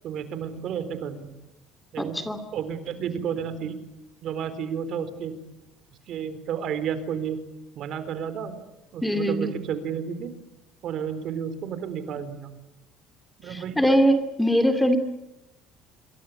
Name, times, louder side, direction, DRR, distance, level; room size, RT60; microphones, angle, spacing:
voice 1, 0.0-1.3 1.9-2.2 2.5-3.8 4.2-5.4 6.1-7.4 7.8-8.6 8.9-10.3 10.8-12.5 13.4-14.0, right 7 dB, 50° right, 12 dB, 4.0 m, -31 dB
voice 2, 2.0-2.4 9.0-9.5 13.4-15.0, equal, 5° left, 8 dB, 2.4 m, -22 dB
27.5 x 24.5 x 8.7 m, 0.93 s
cardioid pair, 165°, 0 cm